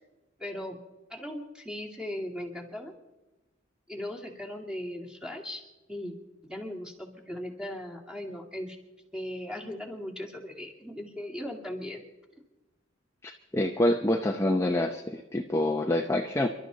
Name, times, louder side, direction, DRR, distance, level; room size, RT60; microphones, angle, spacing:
voice 1, 0.4-0.8 1.1-2.9 3.9-5.6 5.9-6.1 6.5-8.8 9.1-12.0, left 1 dB, 5° right, 1 dB, 2.3 m, -38 dB
voice 2, 13.2-16.5, left 1 dB, 15° left, 3 dB, 0.7 m, -27 dB
28.5 x 12.0 x 4.0 m, 1.1 s
head